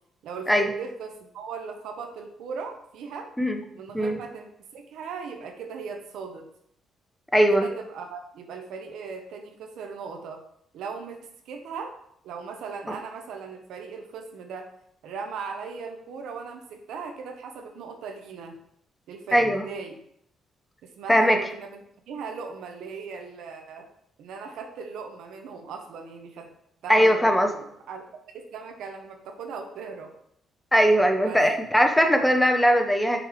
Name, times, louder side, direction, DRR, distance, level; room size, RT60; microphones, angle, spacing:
voice 1, 0.2-3.3 3.7-6.5 7.5-10.4 10.7-11.2 11.4-11.9 12.2-14.7 15.0-18.6 19.1-20.0 20.8-21.8 22.1-23.9 24.2-26.5 26.8-28.1 28.3-30.1 31.2-31.4, right 5 dB, 80° right, 4 dB, 0.9 m, -38 dB
voice 2, 7.3-7.6 12.9-13.0 19.3-19.6 21.1-21.4 26.9-27.5 30.7-33.2, equal, 5° left, 5 dB, 0.7 m, -20 dB
5.9 x 3.2 x 4.9 m, 0.71 s
cardioid pair, 90°, 0 cm